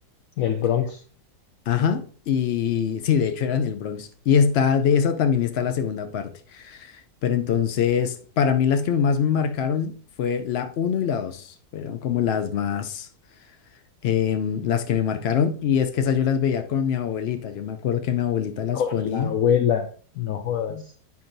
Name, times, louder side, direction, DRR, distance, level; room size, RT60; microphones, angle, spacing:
voice 1, 0.4-1.0 18.7-19.9 20.2-20.8, left 8 dB, 70° left, 0.9 m, -24 dB
voice 2, 1.7-13.1 14.0-19.3 20.7-20.8, left 7 dB, 85° left, 0.5 m, -24 dB
9.4 x 5.5 x 2.6 m
omnidirectional pair, 1.7 m